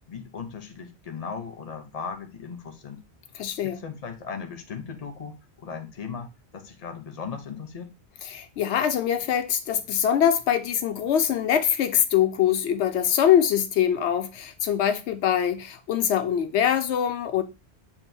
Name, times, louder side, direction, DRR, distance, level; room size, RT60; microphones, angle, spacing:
voice 1, 0.1-3.0 3.6-7.9, left 6 dB, 40° left, 0.6 m, -37 dB
voice 2, 3.3-3.8 8.2-17.4, left 9 dB, 85° left, 0.9 m, -23 dB
7.2 x 2.5 x 2.6 m
omnidirectional pair, 1.1 m